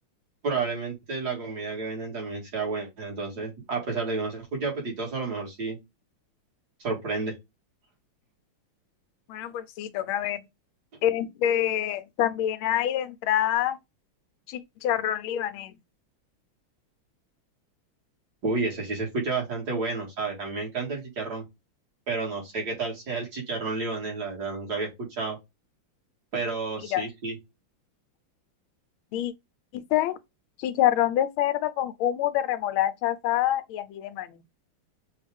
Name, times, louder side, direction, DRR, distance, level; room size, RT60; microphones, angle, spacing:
voice 1, 0.4-5.8 6.8-7.4 18.4-21.4 22.1-24.9 25.2-25.4 26.3-27.3, right 3 dB, 50° right, 2.3 m, -31 dB
voice 2, 9.3-10.4 11.0-13.8 14.5-15.7 26.9-27.0 29.1-29.3 29.7-30.2 30.6-34.4, left 12 dB, 80° left, 1.4 m, -26 dB
6.4 x 2.4 x 3.5 m
omnidirectional pair, 2.2 m